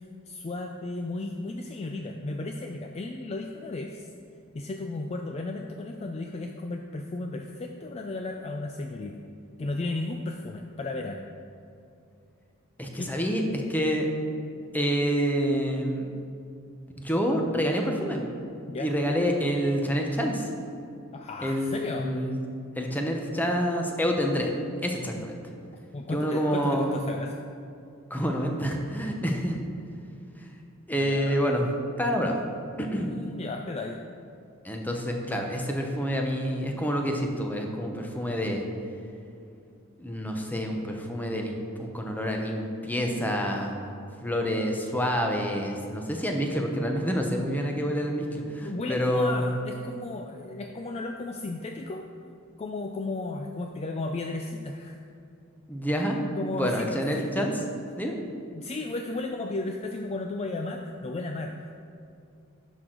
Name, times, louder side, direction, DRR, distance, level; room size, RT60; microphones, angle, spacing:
voice 1, 0.0-4.1 4.5-9.2 9.6-11.2 13.0-13.1 18.7-18.9 21.1-22.1 25.9-27.4 31.0-31.4 32.9-34.0 48.6-52.1 52.6-55.0 56.4-57.3 58.5-61.8, left 2 dB, 30° left, 3 dB, 0.4 m, -34 dB
voice 2, 12.8-14.1 14.7-16.1 17.0-18.2 18.8-20.4 21.4-22.4 22.8-24.5 24.8-25.3 26.1-26.9 28.1-29.6 30.4-30.6 30.9-31.7 32.0-32.4 32.8-33.1 34.6-38.6 40.0-43.7 44.2-49.5 55.7-56.2 56.5-57.5 58.0-58.2, equal, 10° left, 2 dB, 0.8 m, -27 dB
10.5 x 6.2 x 3.9 m, 2.5 s
head